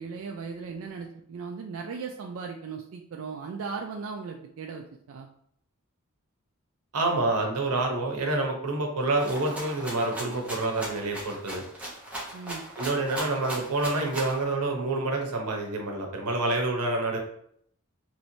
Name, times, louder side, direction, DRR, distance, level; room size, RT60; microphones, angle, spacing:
voice 1, 0.0-5.3 12.3-12.7, right 5 dB, 65° right, 2 dB, 0.3 m, -37 dB
voice 2, 6.9-11.6 12.8-17.2, right 2 dB, 90° right, 2 dB, 0.8 m, -27 dB
Rattle (instrument), 9.2-14.4, right 1 dB, 5° right, 0.8 m, -37 dB
3.0 x 3.0 x 2.7 m, 0.69 s
head